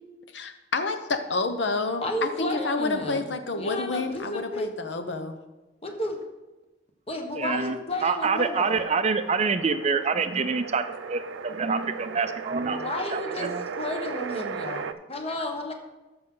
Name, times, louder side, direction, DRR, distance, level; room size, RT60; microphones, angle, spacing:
voice 1, 0.3-5.4, left 3 dB, 70° left, 7 dB, 0.8 m, -29 dB
voice 2, 2.0-4.7 5.1-5.2 5.8-6.3 7.1-8.9 12.7-13.5 13.8-15.7, left 1 dB, 35° left, 3 dB, 1.3 m, -32 dB
voice 3, 7.3-13.6, right 5 dB, 35° right, 10 dB, 0.5 m, -27 dB
sound 1, 8.3-14.9, right 6 dB, 90° right, 0.5 m, -36 dB
13.0 x 6.0 x 3.8 m, 1.1 s
head